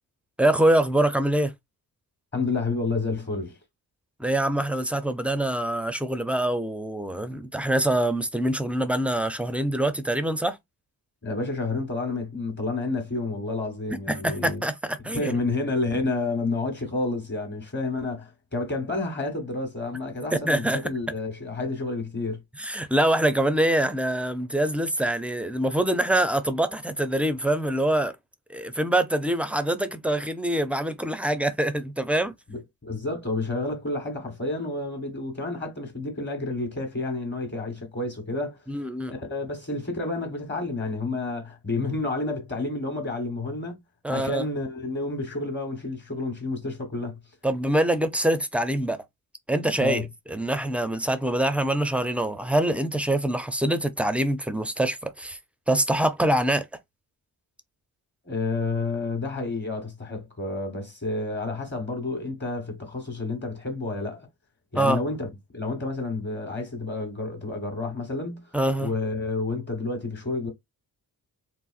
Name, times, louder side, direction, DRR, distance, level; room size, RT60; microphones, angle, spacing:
voice 1, 0.4-1.5 4.2-10.6 14.1-15.4 20.3-20.8 22.6-28.1 28.5-32.3 38.7-39.1 44.0-44.4 47.4-49.0 49.5-55.4 55.7-56.7 64.8-65.0 68.5-68.9, right 1 dB, 5° right, 0.4 m, -24 dB
voice 2, 2.3-3.6 11.2-14.6 15.1-22.4 32.5-38.6 39.1-43.8 44.1-47.2 49.8-50.1 58.2-64.3 64.7-70.5, left 3 dB, 30° left, 1.1 m, -30 dB
4.0 x 2.6 x 2.4 m
wide cardioid pair, 150°, 37 cm